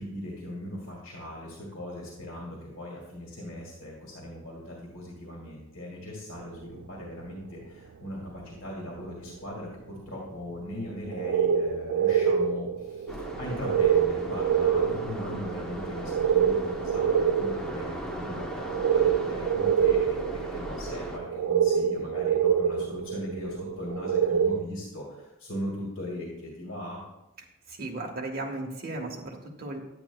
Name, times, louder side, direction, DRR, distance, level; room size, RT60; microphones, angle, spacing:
voice 1, 0.0-27.0, left 1 dB, 75° left, -3 dB, 2.0 m, -39 dB
sound 1, 6.4-6.5 7.0-7.1 7.3-7.4 8.8-8.9 9.6-9.7 11.1-24.6, right 8 dB, 90° right, 0.4 m, -26 dB
sound 2, 13.1-21.2, equal, 5° left, 0.7 m, -38 dB
voice 2, 27.7-29.8, right 2 dB, 50° right, -1 dB, 1.4 m, -35 dB
10.5 x 8.9 x 2.3 m, 0.92 s
head